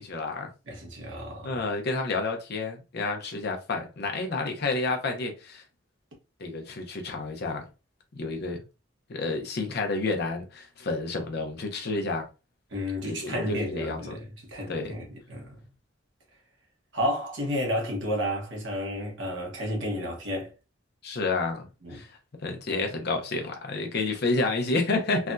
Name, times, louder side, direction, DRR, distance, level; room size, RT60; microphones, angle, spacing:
voice 1, 0.0-0.5 1.4-5.6 6.4-7.7 8.2-8.6 9.1-12.3 13.0-14.2 14.7-14.9 21.0-22.1 22.4-25.3, left 3 dB, 55° left, 0.7 m, -30 dB
voice 2, 0.7-1.6 12.7-15.6 16.9-20.5 21.8-22.0, equal, 70° right, 1.2 m, -32 dB
3.3 x 2.6 x 2.2 m
head